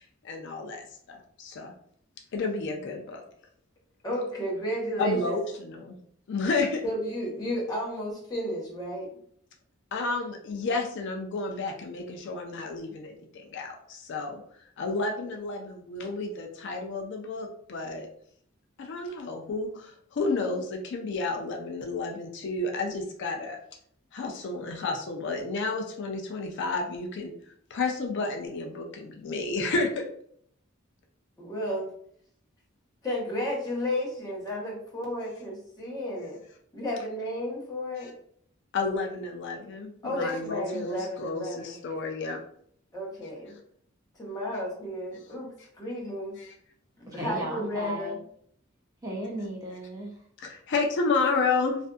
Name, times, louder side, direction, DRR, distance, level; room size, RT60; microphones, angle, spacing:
voice 1, 0.0-1.7 2.3-3.2 5.0-6.0 6.3-6.8 9.9-14.4 14.8-18.1 18.8-23.6 24.1-27.3 27.7-30.0 38.0-38.1 38.7-42.4 46.4-46.5 50.4-51.8, left 3 dB, 60° left, 3 dB, 0.4 m, -31 dB
voice 2, 4.0-5.4 6.8-9.1 31.4-31.9 33.0-36.4 36.7-38.1 40.0-41.8 42.9-43.5 44.2-46.4 47.0-48.2, equal, 20° left, -5 dB, 0.9 m, -32 dB
voice 3, 47.1-48.2 49.0-50.3, right 1 dB, 20° right, -2 dB, 0.5 m, -35 dB
2.5 x 2.5 x 2.3 m, 0.64 s
head